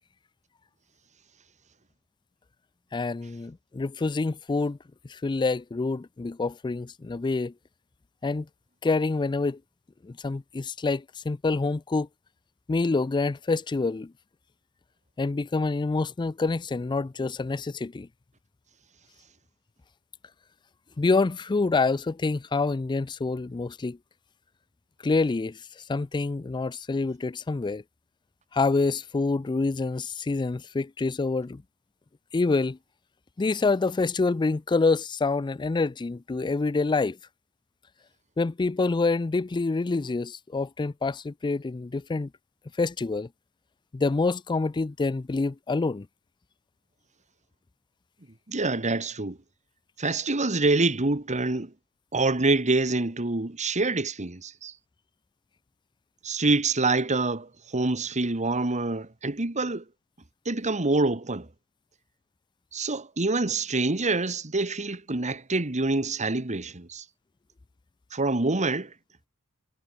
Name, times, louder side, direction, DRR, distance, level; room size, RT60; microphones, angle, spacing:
voice 1, 2.9-4.8 5.1-7.5 8.2-8.5 8.8-9.6 10.0-12.1 12.7-14.1 15.2-18.1 21.0-24.0 25.0-25.6 25.9-27.8 28.5-31.6 32.3-32.8 33.4-37.2 38.4-42.3 42.8-43.3 43.9-46.1, left 3 dB, 20° left, 0.4 m, -27 dB
voice 2, 48.5-49.4 50.0-51.7 52.1-54.7 56.2-59.8 60.4-61.5 62.7-67.0 68.1-68.9, right 3 dB, 30° right, 1.6 m, -26 dB
head